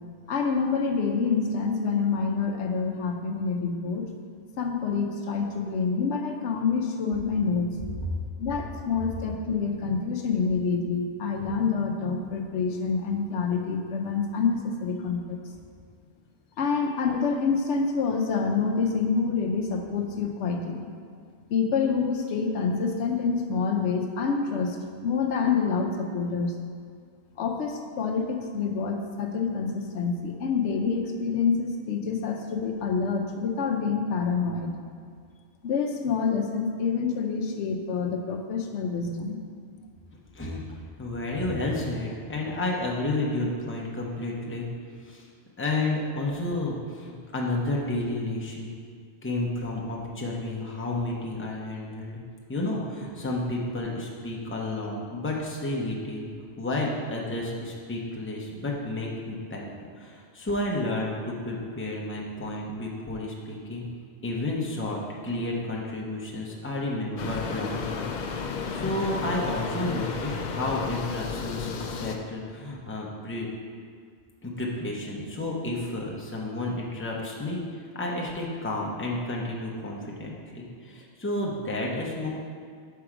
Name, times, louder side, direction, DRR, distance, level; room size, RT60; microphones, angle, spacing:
voice 1, 0.3-4.1 4.6-7.7 8.4-15.4 16.6-20.9 21.5-24.8 25.0-26.5 27.4-34.7 35.6-39.4, left 5 dB, 90° left, 3 dB, 1.0 m, -27 dB
voice 2, 41.0-44.7 45.0-45.3 45.6-48.7 49.2-52.2 52.5-56.3 56.6-59.7 60.0-63.8 64.2-68.0 68.7-73.5 74.4-82.3, left 2 dB, 15° left, -2 dB, 0.7 m, -31 dB
sound 1, 67.2-72.2, left 5 dB, 55° left, 0.5 m, -33 dB
5.9 x 4.7 x 4.9 m, 2.1 s
omnidirectional pair, 1.1 m